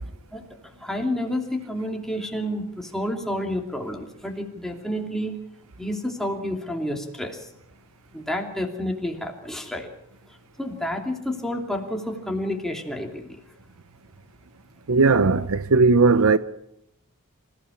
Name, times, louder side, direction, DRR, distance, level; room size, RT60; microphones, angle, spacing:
voice 1, 0.8-5.4 5.8-7.5 8.1-9.9 10.6-13.4, left 1 dB, ahead, 2.9 m, -29 dB
voice 2, 14.9-16.4, right 4 dB, 65° right, 0.7 m, -17 dB
26.0 x 15.5 x 7.2 m
head